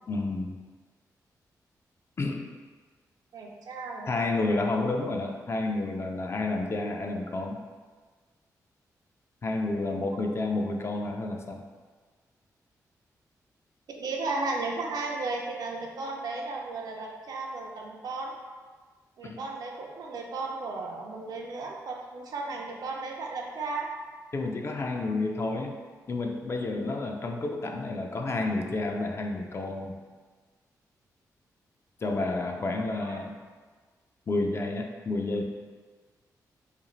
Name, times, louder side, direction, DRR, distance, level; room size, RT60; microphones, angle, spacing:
voice 1, 0.1-0.6 2.2-2.5 4.1-7.6 9.4-11.6 19.2-19.4 24.3-25.8 26.1-30.0 32.0-33.4 34.3-35.4, left 2 dB, 40° left, 3 dB, 0.3 m, -30 dB
voice 2, 3.3-4.5 10.1-10.4 14.0-18.3 19.2-23.9 32.4-33.2, right 3 dB, 70° right, 0 dB, 0.4 m, -35 dB
2.5 x 2.4 x 3.0 m, 1.5 s
cardioid pair, 65°, 7 cm